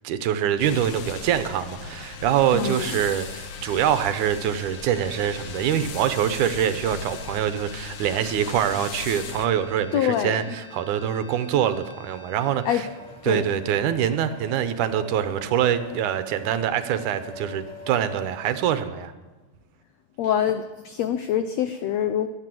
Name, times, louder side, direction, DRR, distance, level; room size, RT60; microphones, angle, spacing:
voice 1, 0.0-12.8 13.3-19.1, right 9 dB, 75° right, 11 dB, 2.1 m, -24 dB
sound 1, 0.6-9.5, left 6 dB, 60° left, 2.0 m, -38 dB
sound 2, 1.7-14.0, left 2 dB, 45° right, 1.5 m, -48 dB
voice 2, 2.5-3.0 9.9-10.6 12.6-12.9 13.2-13.4 20.2-22.3, left 9 dB, 85° left, 9 dB, 1.5 m, -25 dB
sound 3, 12.8-18.3, equal, 15° left, 1.3 m, -43 dB
16.5 x 11.0 x 7.6 m, 1.2 s
omnidirectional pair, 3.8 m